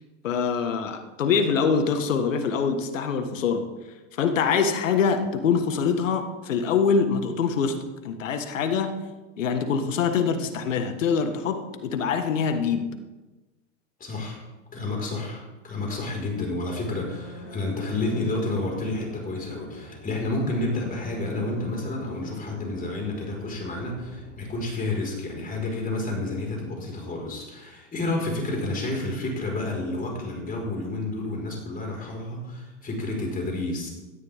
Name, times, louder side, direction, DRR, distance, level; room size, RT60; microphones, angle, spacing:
voice 1, 0.2-3.7 4.2-9.0 9.4-12.9, left 6 dB, 80° left, 7 dB, 1.8 m, -24 dB
voice 2, 14.0-14.4 14.7-33.9, left 2 dB, 20° left, 0 dB, 5.2 m, -30 dB
sound 1, 16.7-24.7, left 1 dB, 40° left, 4.9 m, -43 dB
17.5 x 13.0 x 3.7 m, 1.1 s
hypercardioid pair, 100°, 38 cm